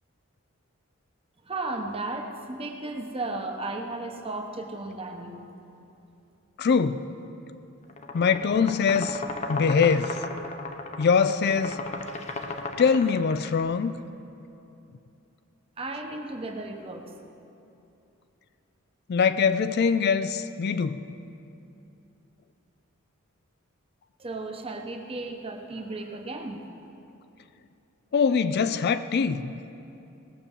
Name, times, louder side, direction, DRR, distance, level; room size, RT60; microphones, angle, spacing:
voice 1, 1.4-5.5 15.8-17.1 24.2-26.6, right 2 dB, 25° right, 4 dB, 1.0 m, -34 dB
voice 2, 6.6-7.1 8.1-9.2 9.5-10.2 11.0-11.8 12.8-13.9 19.1-21.0 28.1-29.5, left 5 dB, 50° left, 12 dB, 0.4 m, -23 dB
sound 1, 7.9-13.6, left 3 dB, 30° left, 0.8 m, -35 dB
18.0 x 6.8 x 7.2 m, 2.8 s
head